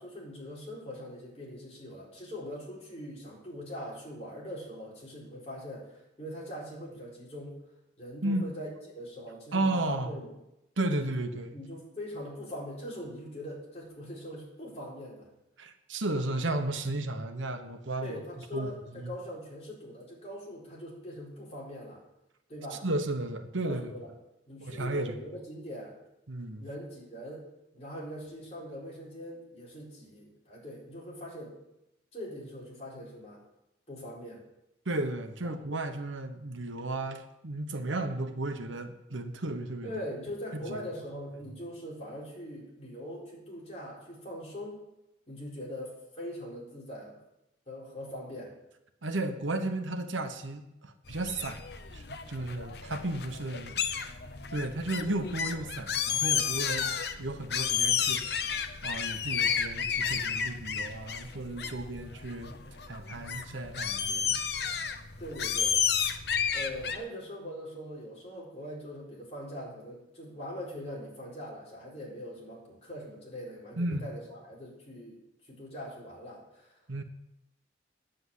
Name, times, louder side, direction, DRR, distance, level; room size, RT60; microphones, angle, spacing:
voice 1, 0.0-7.6 8.0-8.7 8.9-10.3 10.9-11.1 11.5-15.3 18.0-22.0 22.5-22.8 23.6-24.1 24.5-26.0 26.6-27.4 27.7-31.5 32.1-33.4 33.9-34.4 39.8-44.8 45.3-47.2 47.7-48.5 65.2-65.8 66.5-75.2 75.5-76.7, equal, 35° left, -5 dB, 4.3 m, -42 dB
voice 2, 9.5-10.2 10.8-11.5 15.6-18.2 18.5-19.1 22.7-23.9 24.6-25.1 26.3-26.7 34.8-39.9 40.5-40.8 49.0-51.6 51.9-54.2 54.5-58.2 58.8-62.5 62.9-64.4 73.8-74.1 76.9-77.0, right 2 dB, 85° right, 7 dB, 1.1 m, -34 dB
sound 1, 51.1-67.0, left 7 dB, 55° left, 0.8 m, -32 dB
9.8 x 8.0 x 8.1 m, 0.89 s
head